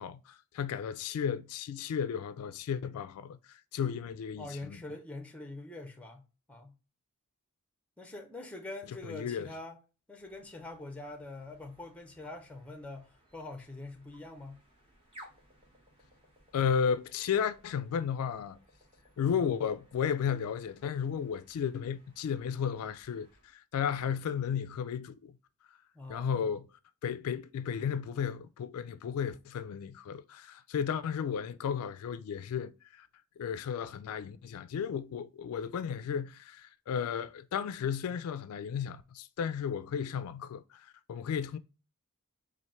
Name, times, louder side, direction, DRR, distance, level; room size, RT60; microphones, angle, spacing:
voice 1, 0.0-4.8 9.0-9.5 16.5-18.6 19.2-25.4 26.1-26.7 27.0-33.1 33.4-41.6, left 7 dB, 75° left, 0.3 m, -34 dB
voice 2, 4.4-6.7 8.0-9.8 10.1-14.6 25.9-26.4, left 2 dB, 5° left, 0.6 m, -44 dB
sound 1, 10.1-23.6, equal, 25° right, 1.0 m, -61 dB
4.2 x 2.5 x 3.0 m
head